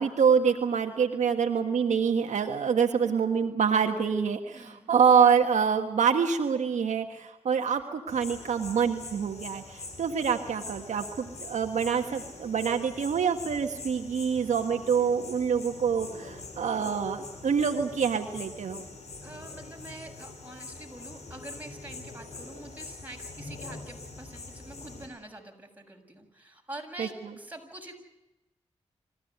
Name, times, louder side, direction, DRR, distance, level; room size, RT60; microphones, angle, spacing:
voice 1, 0.0-18.8 27.0-27.1, right 6 dB, 90° right, 4 dB, 1.5 m, -26 dB
voice 2, 4.5-5.0 19.2-28.0, right 1 dB, 15° right, 1 dB, 7.3 m, -45 dB
sound 1, 8.1-25.1, left 3 dB, 70° left, 5.2 m, -44 dB
26.5 x 15.5 x 9.4 m, 0.94 s
cardioid pair, 50°, 12 cm